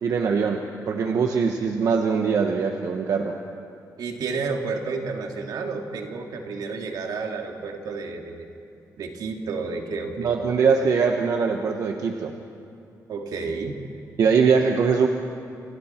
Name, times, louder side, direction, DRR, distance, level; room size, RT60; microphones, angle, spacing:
voice 1, 0.0-0.6 0.9-3.3 10.2-12.3 14.2-15.1, right 5 dB, 60° right, 3 dB, 1.2 m, -22 dB
voice 2, 4.0-8.5 9.0-10.3 13.1-13.8, right 4 dB, 80° right, 2 dB, 2.5 m, -31 dB
29.0 x 27.0 x 4.5 m, 2.6 s
wide cardioid pair, 165°, 7 cm